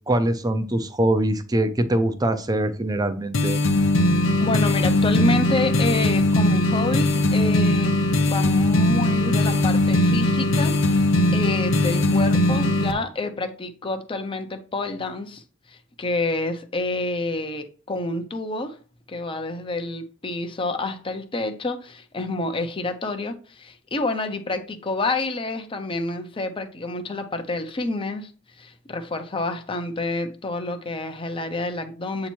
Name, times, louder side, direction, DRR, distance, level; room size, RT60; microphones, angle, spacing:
voice 1, 0.1-3.6, right 1 dB, 20° right, 0.6 m, -23 dB
sound 1, 3.3-12.9, left 1 dB, 70° left, 0.7 m, -20 dB
voice 2, 4.4-7.9 8.2-15.4 15.7-18.8 19.1-28.3 28.6-32.3, left 2 dB, 25° left, 0.6 m, -28 dB
8.0 x 2.9 x 4.5 m
head